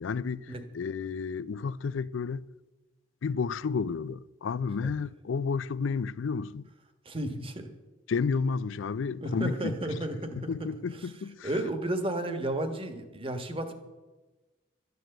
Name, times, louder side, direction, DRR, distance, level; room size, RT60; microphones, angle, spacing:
voice 1, 0.0-2.4 3.2-6.7 8.1-9.9 10.3-11.5, left 5 dB, 85° left, 0.4 m, -31 dB
voice 2, 7.0-7.7 9.2-11.1 11.4-13.7, right 1 dB, 30° right, 1.3 m, -33 dB
13.0 x 9.4 x 7.8 m
head